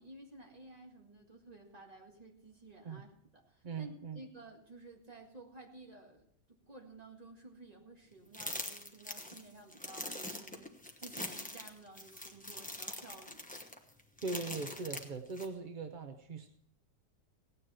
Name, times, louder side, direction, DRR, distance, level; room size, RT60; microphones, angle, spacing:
voice 1, 0.0-3.1 3.3-13.4, right 2 dB, 25° right, 1 dB, 1.9 m, -54 dB
voice 2, 3.6-4.2 14.2-16.5, right 4 dB, 50° right, 6 dB, 0.6 m, -40 dB
sound 1, 8.3-15.5, left 1 dB, 5° left, 0.8 m, -43 dB
16.5 x 9.9 x 4.3 m, 0.69 s
omnidirectional pair, 1.8 m